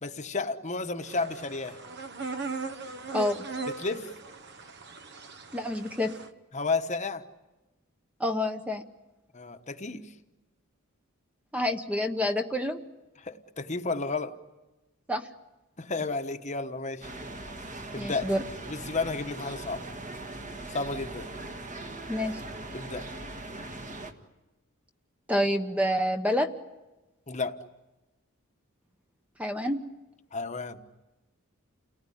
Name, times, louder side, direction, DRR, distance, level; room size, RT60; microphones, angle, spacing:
voice 1, 0.0-1.8 3.7-4.1 6.5-7.3 9.3-10.1 13.2-14.4 15.8-17.1 17.9-18.3 18.7-19.9 20.7-21.3 22.7-23.1 27.3-27.6 30.3-30.8, left 3 dB, 35° left, 8 dB, 1.1 m, -32 dB
sound 1, 1.1-6.3, right 3 dB, 50° right, 1.0 m, -38 dB
voice 2, 3.1-3.4 5.5-6.1 8.2-8.8 11.5-12.8 15.1-15.3 18.0-18.4 22.1-22.4 25.3-26.5 29.4-29.8, left 1 dB, 5° right, 6 dB, 0.9 m, -28 dB
sound 2, 17.0-24.1, right 2 dB, 35° right, 1.7 m, -40 dB
30.0 x 19.0 x 9.9 m, 1.1 s
head